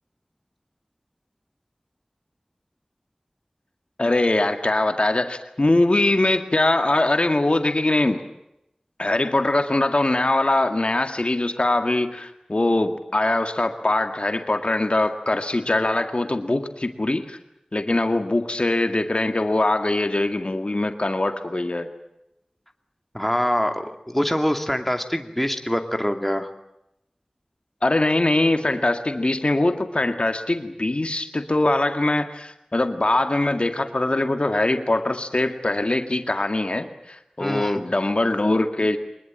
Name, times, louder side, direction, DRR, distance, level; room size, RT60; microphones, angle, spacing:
voice 1, 4.0-8.2 9.0-17.4 17.7-21.9 27.8-39.0, left 2 dB, 60° left, 6 dB, 2.0 m, -22 dB
voice 2, 23.1-26.5 37.4-37.9, equal, 10° left, 5 dB, 2.5 m, -24 dB
24.0 x 20.5 x 9.0 m, 0.84 s
wide cardioid pair, 40°, 2 cm